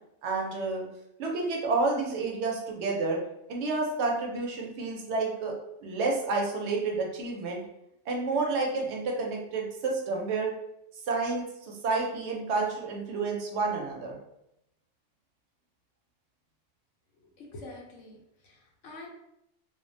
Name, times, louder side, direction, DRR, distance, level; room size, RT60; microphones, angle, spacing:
voice 1, 0.2-0.9 1.2-3.2 3.5-5.5 5.8-7.6 8.1-10.5 11.1-14.2, right 3 dB, 70° right, 0 dB, 0.9 m, -30 dB
voice 2, 17.2-19.1, left 2 dB, 80° left, -1 dB, 1.0 m, -46 dB
2.4 x 2.1 x 2.5 m, 0.81 s
omnidirectional pair, 1.2 m